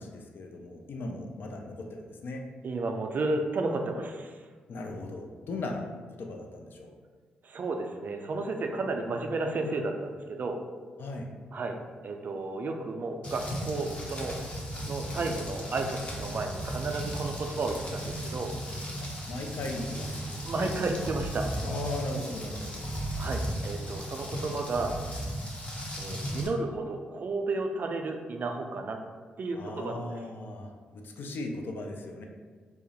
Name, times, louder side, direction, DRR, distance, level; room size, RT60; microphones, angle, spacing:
voice 1, 0.0-2.4 4.7-5.9 6.2-6.9 11.0-11.3 19.0-20.1 20.3-20.7 21.6-22.9 29.5-32.2, left 2 dB, 65° left, 3 dB, 0.3 m, -37 dB
voice 2, 2.6-4.4 7.4-10.6 11.5-11.8 12.0-14.4 14.8-18.5 20.4-21.6 23.2-24.9 26.0-29.0 29.4-30.1, right 3 dB, 50° right, 4 dB, 0.3 m, -32 dB
Rain, 13.2-26.5, equal, 30° left, 0.7 m, -36 dB
2.3 x 2.0 x 2.8 m, 1.5 s
supercardioid pair, 45°, 4 cm